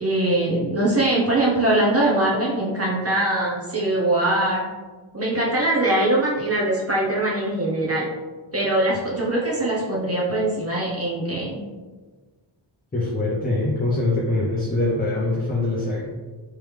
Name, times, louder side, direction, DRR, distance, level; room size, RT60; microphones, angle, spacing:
voice 1, 0.0-4.7 5.1-8.1 8.5-11.6, right 1 dB, 30° right, -5 dB, 0.7 m, -22 dB
voice 2, 12.9-16.1, left 2 dB, 20° left, -5 dB, 0.5 m, -23 dB
3.4 x 3.1 x 3.1 m, 1.4 s
wide cardioid pair, 165°, 49 cm